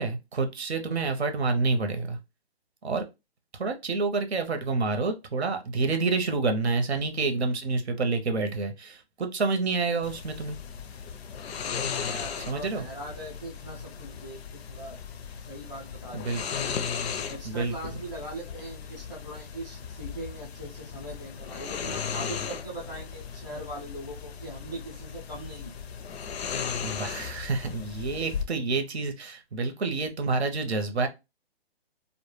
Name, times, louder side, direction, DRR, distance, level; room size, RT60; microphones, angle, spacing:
voice 1, 0.0-2.2 2.8-3.0 3.6-10.6 12.5-12.8 16.1-16.4 17.4-17.7 26.8-31.1, right 3 dB, 90° right, 0.8 m, -28 dB
sound 1, 10.0-28.4, left 7 dB, 75° left, 0.5 m, -36 dB
voice 2, 11.6-15.0 15.4-16.3 17.3-25.8, right 1 dB, ahead, 0.4 m, -41 dB
2.1 x 2.1 x 3.2 m
hypercardioid pair, 155°, 32 cm